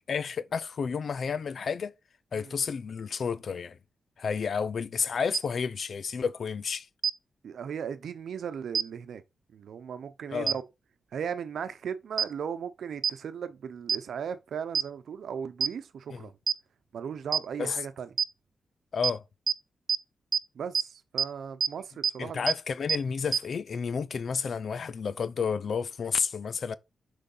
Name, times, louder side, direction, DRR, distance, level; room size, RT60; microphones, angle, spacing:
voice 1, 0.1-1.9 2.3-3.8 4.2-6.9 10.3-10.5 16.1-16.2 17.6-17.8 18.9-19.2 22.2-26.7, left 6 dB, 55° left, 0.5 m, -31 dB
sound 1, 5.3-5.4 7.0-7.1 8.7-8.8 10.5-10.6 12.2-12.3 13.0-13.1 13.9-14.0 14.7-14.8 15.6-15.7 16.5-16.6 17.3-17.4 18.2-18.3 19.0-19.1 19.5-19.6 19.9-20.0 20.3-20.4 20.7-20.8 21.2-21.3 21.6-21.7 22.0-22.1 22.5-22.6 22.9-23.0 23.3-23.4, right 7 dB, 55° right, 0.5 m, -24 dB
voice 2, 7.4-9.2 9.5-10.6 11.1-16.3 16.9-18.1 20.5-22.5, right 7 dB, 75° right, 0.9 m, -37 dB
6.5 x 5.2 x 5.6 m
wide cardioid pair, 135°, 0 cm